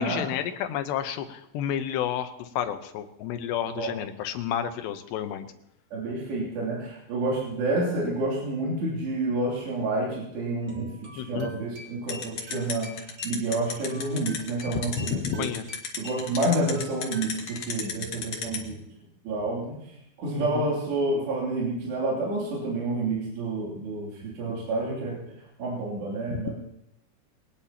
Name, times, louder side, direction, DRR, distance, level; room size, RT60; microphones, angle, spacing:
voice 1, 0.0-5.5 11.2-11.5 15.0-15.7 20.4-20.7 26.3-26.4, left 9 dB, 80° left, 8 dB, 3.1 m, -31 dB
voice 2, 5.9-15.5 16.0-18.8 19.3-25.2 25.6-26.5, right 2 dB, 80° right, -5 dB, 5.1 m, -29 dB
sound 1, 10.6-17.9, left 1 dB, 35° right, 2.1 m, -47 dB
sound 2, 12.1-18.6, left 7 dB, 55° left, 2.5 m, -32 dB
22.5 x 18.5 x 2.9 m, 0.78 s
omnidirectional pair, 4.9 m